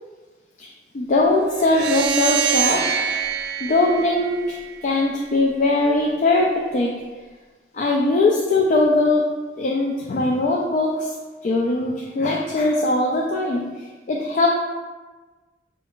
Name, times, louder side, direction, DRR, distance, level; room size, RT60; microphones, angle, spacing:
voice 1, 0.9-2.9 3.6-6.9 7.7-9.3 9.6-11.1 11.4-14.5, left 2 dB, 45° left, -1 dB, 0.3 m, -20 dB
sound 1, 1.6-4.9, right 8 dB, 65° right, 0.5 m, -24 dB
5.1 x 2.4 x 2.9 m, 1.3 s
head